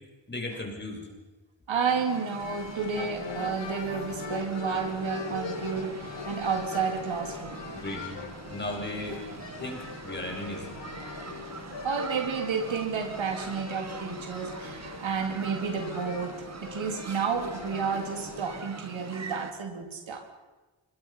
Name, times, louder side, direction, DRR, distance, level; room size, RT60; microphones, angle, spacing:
voice 1, 0.3-1.0 7.7-8.1 8.5-9.2 9.6-10.7, left 1 dB, 20° left, 1 dB, 6.4 m, -36 dB
voice 2, 1.7-7.6 11.8-20.2, right 6 dB, 75° right, 4 dB, 3.8 m, -31 dB
sound 1, 1.9-19.5, right 4 dB, 35° right, 1.8 m, -43 dB
sound 2, 2.4-18.6, left 5 dB, 65° left, 2.7 m, -41 dB
25.5 x 21.5 x 5.8 m, 1.2 s
wide cardioid pair, 135°, 46 cm